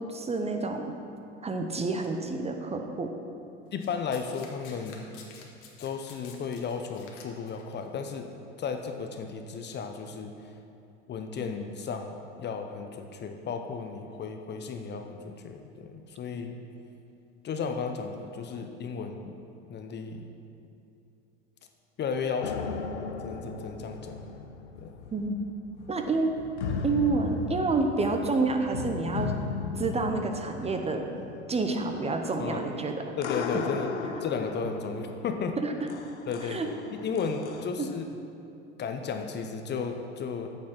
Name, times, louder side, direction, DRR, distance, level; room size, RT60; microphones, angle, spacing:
voice 1, 0.1-1.0 1.4-3.1 25.1-25.4 25.9-26.3 26.8-29.3 29.8-31.0 31.5-33.0 35.6-35.9 36.5-36.7 37.8-37.9, right 3 dB, 20° right, 5 dB, 0.8 m, -28 dB
voice 2, 3.7-5.1 5.8-8.3 8.6-10.5 11.1-16.5 17.4-19.3 19.7-20.3 22.0-22.8 23.2-24.2 24.8-25.0 32.4-32.6 33.2-33.9 34.2-35.6 36.3-36.6 36.9-38.0 38.8-40.5, left 5 dB, 30° left, 5 dB, 0.7 m, -34 dB
Domestic sounds home sounds, 3.8-7.7 8.6-8.8, left 6 dB, 60° left, 1.6 m, -50 dB
sound 1, 22.4-37.7, left 5 dB, 90° left, 0.7 m, -37 dB
8.8 x 6.4 x 5.8 m, 2.6 s
hypercardioid pair, 85°, 33 cm